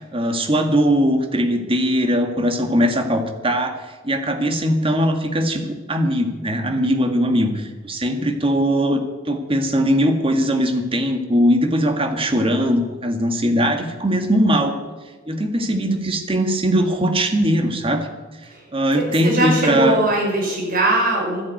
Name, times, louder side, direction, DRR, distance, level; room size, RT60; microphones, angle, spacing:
voice 1, 0.1-3.7 4.0-5.6 5.9-9.0 9.3-14.7 15.3-18.1 18.7-20.0, equal, 30° right, 5 dB, 1.8 m, -20 dB
voice 2, 18.9-21.4, right 2 dB, 50° right, -2 dB, 5.7 m, -21 dB
12.5 x 11.0 x 9.1 m, 1.3 s
head